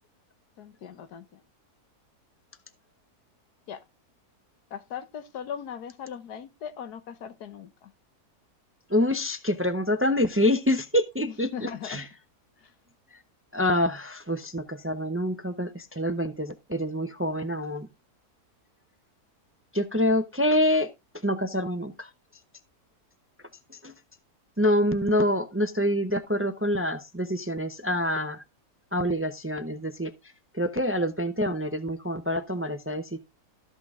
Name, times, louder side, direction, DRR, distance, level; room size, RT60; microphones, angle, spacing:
voice 1, 0.6-1.4 3.7-3.8 4.7-7.9 11.3-12.0 12.6-12.7, left 8 dB, 85° left, 1.5 m, -39 dB
voice 2, 8.9-12.0 13.5-17.9 19.7-20.9 21.2-22.1 23.7-23.9 24.6-28.4 28.9-30.1 30.5-33.2, left 1 dB, 20° right, 0.3 m, -26 dB
13.5 x 6.1 x 3.6 m
omnidirectional pair, 1.6 m